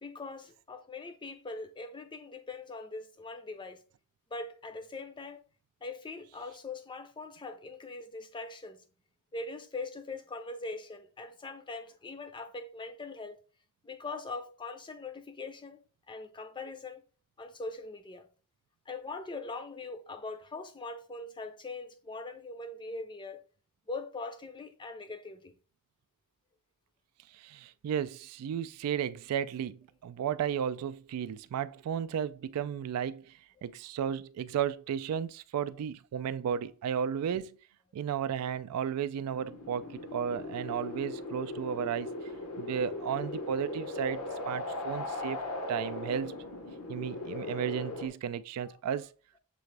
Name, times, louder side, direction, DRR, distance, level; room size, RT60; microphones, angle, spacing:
voice 1, 0.0-3.8 4.3-5.4 5.8-8.8 9.3-13.4 13.8-15.8 16.1-17.0 17.4-18.3 18.9-23.4 23.9-25.5 48.6-48.8, left 3 dB, 20° left, 0.5 m, -41 dB
voice 2, 27.3-33.3 33.6-37.6 37.9-42.1 42.6-46.4 46.9-49.1, right 8 dB, 75° right, 0.3 m, -34 dB
sound 1, 39.3-48.1, left 2 dB, 75° left, 0.8 m, -38 dB
6.7 x 2.5 x 3.2 m
head